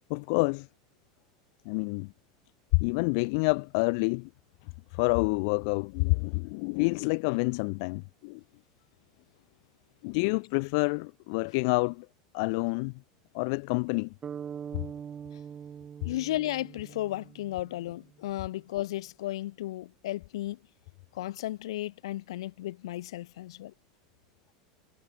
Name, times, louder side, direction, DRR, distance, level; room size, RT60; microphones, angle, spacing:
voice 1, 0.1-0.7 1.7-2.1 2.7-4.3 4.9-8.4 10.0-12.1 12.3-12.9 13.3-14.1, left 33 dB, 55° left, 0.4 m, -28 dB
sound 1, 14.2-18.1, right 8 dB, 20° right, 3.0 m, -43 dB
voice 2, 16.0-20.6 21.1-23.7, left 15 dB, 85° left, 2.9 m, -34 dB
supercardioid pair, 150°, 3 cm